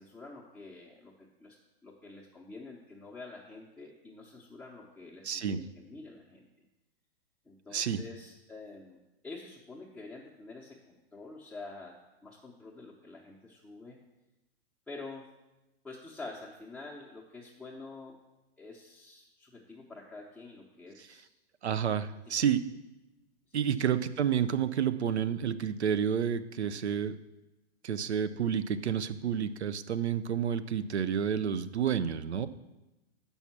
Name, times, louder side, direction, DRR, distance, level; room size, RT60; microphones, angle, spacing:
voice 1, 0.0-1.6 1.8-6.5 7.4-9.0 9.2-12.0 12.2-14.0 14.9-15.3 15.8-18.2 18.6-21.3 22.3-22.5 23.5-23.8 26.6-27.0, left 3 dB, 5° left, -5 dB, 0.8 m, -47 dB
voice 2, 5.2-5.6 7.7-8.0 21.6-22.6 23.5-27.2 27.8-32.5, right 8 dB, 90° right, 12 dB, 0.6 m, -30 dB
7.1 x 5.6 x 5.9 m, 1.0 s
hypercardioid pair, 120°, 32 cm